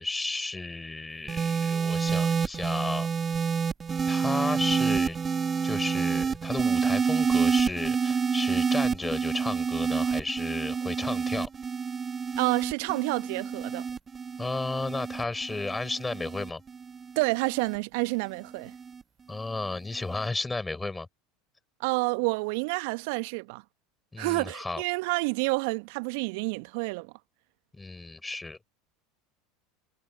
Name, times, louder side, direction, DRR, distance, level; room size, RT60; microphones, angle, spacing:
voice 1, 0.0-3.1 4.1-5.2 5.6-11.5 14.4-16.6 19.3-21.1 24.1-24.8 27.7-28.6, left 3 dB, 10° left, 7.4 m, -33 dB
sound 1, 1.3-17.8 18.7-19.0, right 6 dB, 25° right, 1.6 m, -28 dB
voice 2, 12.4-13.8 17.1-18.7 21.8-23.6 24.2-27.1, right 29 dB, 60° right, 1.4 m, -29 dB
figure-of-eight pair, 75°, 0 cm